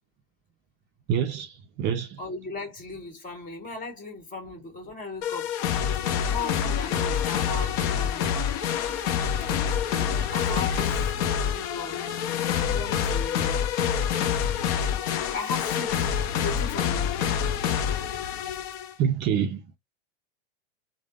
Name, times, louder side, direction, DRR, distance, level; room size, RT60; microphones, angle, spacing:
voice 1, 1.1-2.2 19.0-19.8, right 8 dB, 35° right, 0.4 m, -27 dB
voice 2, 2.2-5.5 6.3-8.3 10.3-12.1 12.6-13.7 15.3-16.1 16.4-17.1, left 3 dB, 25° left, 1.4 m, -37 dB
sound 1, 5.2-18.9, left 8 dB, 45° left, 0.6 m, -27 dB
sound 2, 6.0-12.0, left 1 dB, 5° left, 1.0 m, -43 dB
3.2 x 2.0 x 2.2 m
hypercardioid pair, 110°, 32 cm